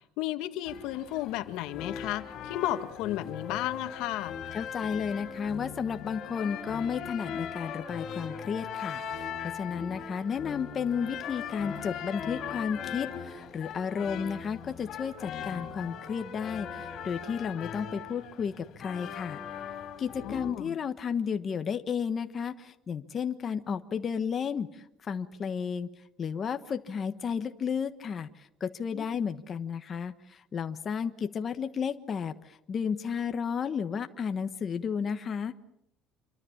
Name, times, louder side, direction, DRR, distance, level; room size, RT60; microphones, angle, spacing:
voice 1, 0.2-4.3 20.2-20.8 28.9-29.0, left 14 dB, 75° left, 9 dB, 1.7 m, -33 dB
sound 1, 0.7-20.5, left 7 dB, 50° left, 4.2 m, -39 dB
voice 2, 4.5-19.4 20.0-25.9 26.2-35.5, left 6 dB, 30° left, 8 dB, 1.2 m, -33 dB
27.5 x 24.0 x 7.3 m, 0.74 s
cardioid pair, 150°, 0 cm